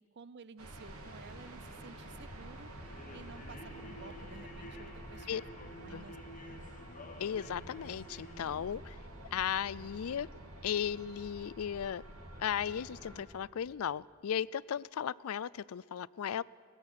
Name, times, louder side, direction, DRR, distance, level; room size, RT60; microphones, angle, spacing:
voice 1, 0.0-5.4 5.8-6.7, right 4 dB, 50° right, 17 dB, 0.6 m, -53 dB
sound 1, 0.6-13.2, right 1 dB, 85° right, 2.5 m, -49 dB
sound 2, 2.8-8.7, left 1 dB, 35° left, 1.1 m, -51 dB
voice 2, 7.2-9.0 9.3-10.3 10.6-12.0 12.4-16.4, left 8 dB, 80° left, 22 dB, 0.4 m, -36 dB
22.0 x 18.5 x 6.6 m, 2.2 s
head